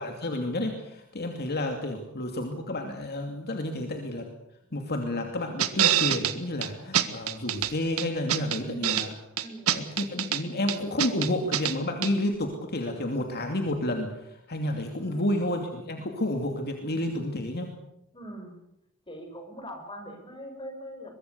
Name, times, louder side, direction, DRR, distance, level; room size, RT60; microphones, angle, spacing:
voice 1, 0.0-4.2 4.7-9.1 9.7-17.7, left 1 dB, 50° left, 4 dB, 2.7 m, -30 dB
sound 1, 5.6-6.3 6.6-6.7 6.9-7.7 8.0-9.1 9.4-10.4 10.7-11.7 12.0-12.1, right 10 dB, 70° right, 1.8 m, -25 dB
voice 2, 8.6-9.1 9.4-9.8 15.0-15.3 18.1-18.5 19.1-21.1, right 1 dB, 25° left, 5 dB, 6.1 m, -42 dB
23.0 x 22.5 x 6.9 m, 0.83 s
head